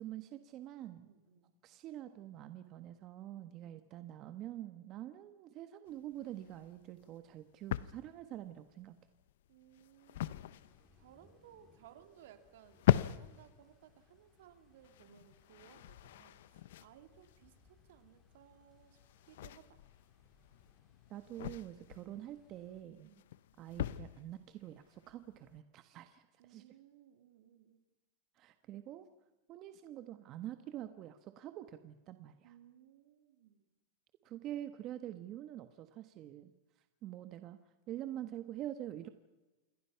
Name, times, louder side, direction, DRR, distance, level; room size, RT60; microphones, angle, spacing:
voice 1, 0.0-1.1 1.6-8.9 21.1-23.1 23.6-26.2 26.5-26.6 28.4-29.1 29.5-32.5 34.2-36.5 37.0-37.6 37.9-39.1, right 12 dB, 40° right, 9 dB, 1.3 m, -46 dB
voice 2, 1.0-1.5 3.3-3.8 4.8-5.1 9.5-19.0 19.3-19.8 23.0-23.3 26.4-27.8 32.4-33.7, right 10 dB, 75° right, 8 dB, 3.1 m, -62 dB
sound 1, 5.9-25.6, left 12 dB, 75° left, 0.8 m, -40 dB
sound 2, 10.4-22.8, left 2 dB, 10° left, 5.4 m, -71 dB
28.0 x 22.5 x 5.9 m, 1.1 s
supercardioid pair, 140°, 0 cm